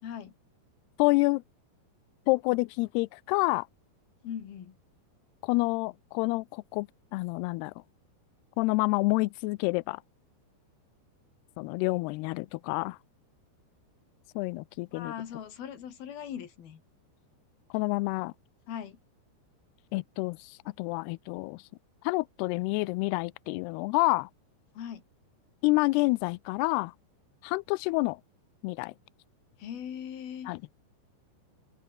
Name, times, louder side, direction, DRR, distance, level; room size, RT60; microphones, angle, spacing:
voice 1, 0.0-0.3 4.2-4.8 14.9-16.8 18.7-19.0 24.7-25.0 29.6-30.6, left 9 dB, 60° left, 4.3 m, -40 dB
voice 2, 1.0-1.4 2.3-3.7 5.4-6.9 7.1-7.7 8.6-10.0 11.6-13.0 14.4-15.1 17.7-18.3 19.9-21.6 22.0-24.3 25.6-26.9 27.4-28.2 28.6-28.9 30.5-30.6, left 24 dB, 85° left, 2.3 m, -28 dB
omnidirectional pair, 5.2 m